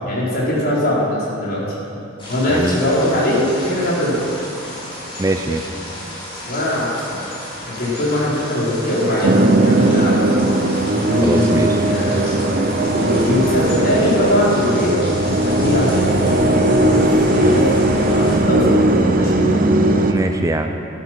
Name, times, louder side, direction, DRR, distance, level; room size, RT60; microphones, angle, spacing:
voice 1, 0.0-1.6 2.3-4.2 6.5-7.2 7.6-10.4 11.0-12.1 12.9-14.9 15.3-17.7 17.9-19.4, left 1 dB, 50° left, -6 dB, 4.4 m, -20 dB
sound 1, 2.2-18.4, left 1 dB, 25° left, 4.1 m, -33 dB
voice 2, 5.2-5.7 11.2-11.8 20.1-20.7, right 2 dB, 15° right, 5 dB, 0.5 m, -21 dB
sound 2, 9.2-20.1, right 1 dB, 45° right, 1.0 m, -17 dB
13.5 x 13.0 x 6.0 m, 2.8 s
head